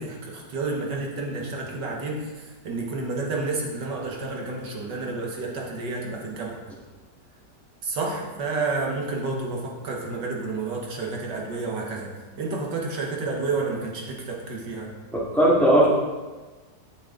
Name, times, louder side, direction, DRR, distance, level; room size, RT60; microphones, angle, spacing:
voice 1, 0.0-6.6 7.8-14.9, right 3 dB, 75° right, -1 dB, 1.9 m, -30 dB
voice 2, 15.1-15.9, right 1 dB, ahead, -6 dB, 1.7 m, -18 dB
10.0 x 7.0 x 3.8 m, 1.3 s
omnidirectional pair, 2.0 m